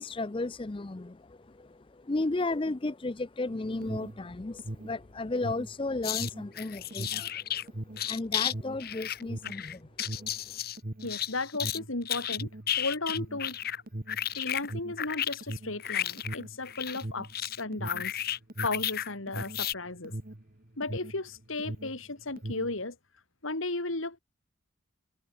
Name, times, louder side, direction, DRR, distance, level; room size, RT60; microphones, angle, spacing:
voice 1, 0.0-7.8 8.0-9.9 10.2-10.3, left 2 dB, 25° left, 0.5 m, -34 dB
Alarm, 3.5-21.3 21.5-22.8, right 1 dB, 45° right, 1.4 m, -40 dB
sound 1, 6.0-6.3 6.6-7.7 8.0-8.5 8.8-11.8 12.1-13.8 14.1-19.1 19.3-19.7, left 10 dB, 45° left, 2.7 m, -33 dB
voice 2, 11.0-12.5 12.8-13.6 14.3-18.2 18.6-20.1 20.8-23.0 23.4-24.2, left 2 dB, 75° left, 2.7 m, -35 dB
head